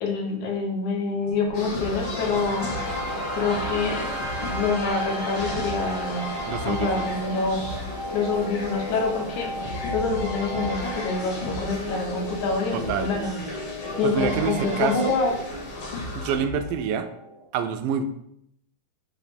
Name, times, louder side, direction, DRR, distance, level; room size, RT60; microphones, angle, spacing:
voice 1, 0.0-2.7 3.3-4.1 4.5-6.3 6.6-7.7 8.1-9.5 9.9-13.3 14.0-15.4, left 4 dB, 70° left, 2 dB, 2.1 m, -26 dB
sound 1, 1.2-2.1 2.6-3.9 4.2-5.9 6.2-7.2 7.6-9.2 9.6-14.5 15.3-16.7, left 4 dB, 90° left, 3.3 m, -37 dB
sound 2, 1.5-16.4, left 1 dB, 55° left, 1.4 m, -35 dB
sound 3, 1.5-17.5, right 1 dB, 5° right, 0.3 m, -36 dB
voice 2, 6.5-7.1 12.7-13.1 14.0-15.2 16.2-17.1 17.5-18.0, right 7 dB, 80° right, 8 dB, 2.2 m, -27 dB
7.8 x 2.8 x 5.2 m, 0.75 s
omnidirectional pair, 3.9 m